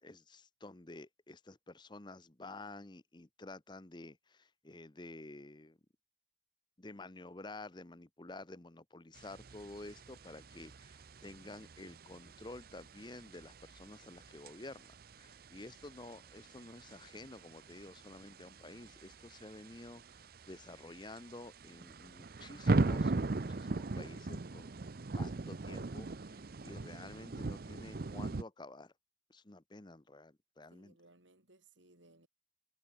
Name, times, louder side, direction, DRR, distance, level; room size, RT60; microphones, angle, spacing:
voice 1, 0.0-5.8 6.8-24.7 25.1-28.9 29.3-31.0, left 2 dB, 25° left, 0.9 m, -51 dB
sound 1, 9.2-28.4, right 3 dB, 55° right, 0.7 m, -40 dB
voice 2, 30.7-32.3, right 2 dB, 90° right, 7.1 m, -64 dB
head